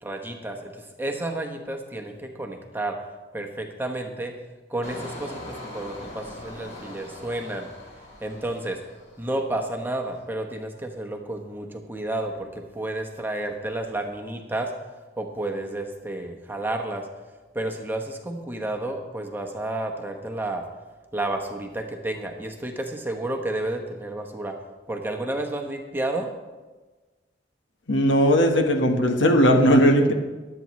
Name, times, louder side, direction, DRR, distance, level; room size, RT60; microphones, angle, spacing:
voice 1, 0.0-3.0 3.3-4.4 4.7-7.7 8.2-8.8 9.2-14.7 15.2-17.1 17.5-20.6 21.1-24.6 24.9-26.3, right 1 dB, 10° right, 3 dB, 1.0 m, -31 dB
Engine, 4.8-9.5 9.9-10.2, left 1 dB, 35° left, 3.2 m, -41 dB
voice 2, 27.9-30.1, equal, 90° left, 3 dB, 1.3 m, -18 dB
21.5 x 8.5 x 3.1 m, 1.3 s
head